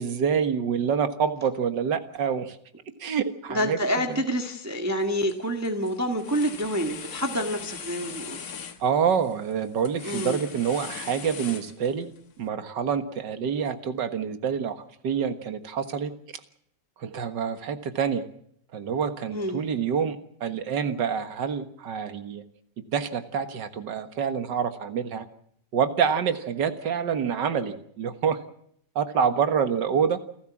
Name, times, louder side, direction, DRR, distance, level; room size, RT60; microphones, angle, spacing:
voice 1, 0.0-2.6 3.0-3.8 8.8-16.1 17.0-18.2 18.7-22.4 22.9-25.3 25.7-28.4 29.0-30.2, right 7 dB, 70° right, 9 dB, 2.1 m, -27 dB
voice 2, 3.5-8.4 10.0-10.4 19.3-19.6, equal, 10° right, 3 dB, 1.5 m, -28 dB
sound 1, 5.0-5.3 5.6-12.2, left 6 dB, 55° left, 1.9 m, -40 dB
29.0 x 13.0 x 7.3 m, 0.68 s
omnidirectional pair, 2.0 m